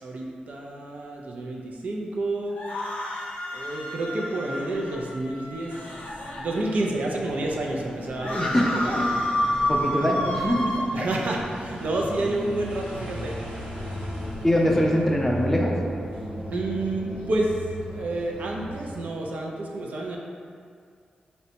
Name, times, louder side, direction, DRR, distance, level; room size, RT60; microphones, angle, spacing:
voice 1, 0.0-2.6 3.5-5.8 6.3-9.2 10.9-13.4 16.5-17.6 17.9-20.2, right 2 dB, 65° right, -1 dB, 0.4 m, -29 dB
sound 1, 2.5-7.0 7.5-7.6 7.7-10.8, left 1 dB, 85° left, 0.5 m, -30 dB
sound 2, 4.8-19.0, equal, 80° right, 0.8 m, -37 dB
voice 2, 8.2-9.2 9.7-11.1 14.4-15.7, equal, 10° left, -2 dB, 0.4 m, -23 dB
4.0 x 2.1 x 2.8 m, 2.1 s
cardioid pair, 80°, 3 cm